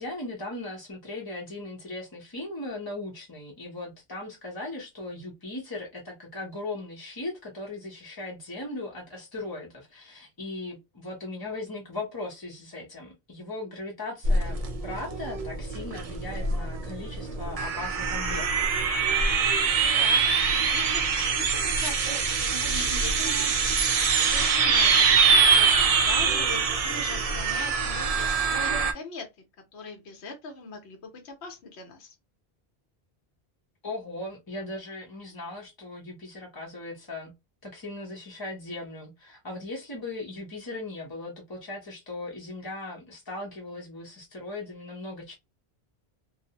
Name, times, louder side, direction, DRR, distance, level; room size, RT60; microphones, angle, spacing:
voice 1, 0.0-14.6 14.8-18.8 33.8-37.3 37.6-45.3, left 2 dB, 25° left, 0.6 m, -38 dB
sound 1, 14.2-28.9, right 5 dB, 55° right, 0.4 m, -24 dB
voice 2, 19.8-23.5 24.1-29.3 29.7-32.1, left 4 dB, 85° left, 1.0 m, -41 dB
2.5 x 2.0 x 2.7 m
omnidirectional pair, 1.1 m